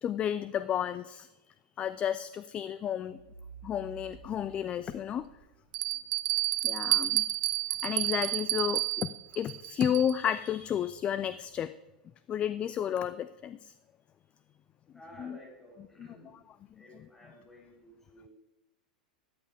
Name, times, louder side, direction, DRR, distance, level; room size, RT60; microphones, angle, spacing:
voice 1, 0.0-1.3 1.8-3.2 3.6-5.3 6.6-7.3 7.8-9.1 9.3-11.7 12.3-13.7 15.2-15.4 16.0-16.4, left 9 dB, 25° left, 15 dB, 0.3 m, -32 dB
sound 1, 3.0-5.8, right 5 dB, 85° left, 2.7 m, -52 dB
Bell, 4.1-4.2 4.9-5.0 5.7-10.3, right 17 dB, 50° right, 0.4 m, -30 dB
voice 2, 14.9-16.4 16.8-18.3, equal, 10° left, -2 dB, 4.1 m, -53 dB
14.0 x 9.3 x 3.5 m, 1.0 s
figure-of-eight pair, 90°, 5 cm